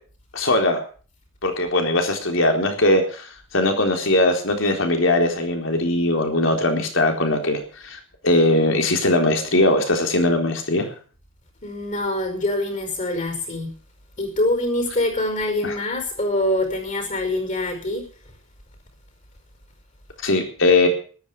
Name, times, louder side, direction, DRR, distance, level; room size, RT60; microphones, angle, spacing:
voice 1, 0.3-0.8 1.4-10.9 15.6-15.7 20.2-20.9, left 2 dB, 70° left, 4 dB, 3.9 m, -20 dB
voice 2, 11.6-13.7 14.2-18.0, left 1 dB, 40° left, 5 dB, 5.2 m, -24 dB
13.5 x 12.0 x 7.1 m, 0.41 s
head